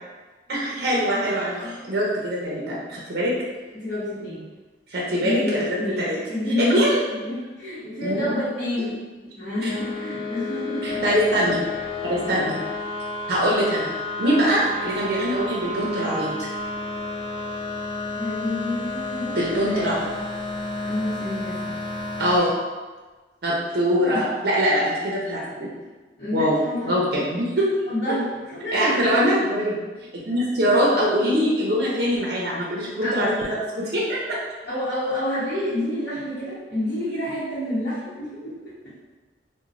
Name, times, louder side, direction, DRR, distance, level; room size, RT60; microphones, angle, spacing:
voice 1, 0.5-3.3 4.9-5.4 5.7-5.8 6.1-6.2 6.6-7.0 8.0-8.2 10.8-11.6 12.0-12.5 13.3-13.9 14.2-16.4 19.4-19.9 22.2-22.5 23.4-25.7 26.3-26.6 26.8-27.7 28.7-29.8 30.1-34.4, equal, 60° right, -5 dB, 0.5 m, -23 dB
voice 2, 1.1-1.7 3.7-4.4 5.2-9.0 9.4-11.1 18.2-19.9 20.8-21.8 24.0-24.3 26.2-26.9 27.9-29.0 31.3-31.5 33.0-33.4 34.6-38.6, left 1 dB, 60° left, -14 dB, 0.9 m, -29 dB
sound 1, 9.7-22.4, left 3 dB, 30° left, 0.5 m, -31 dB
3.0 x 2.1 x 2.5 m, 1.3 s
head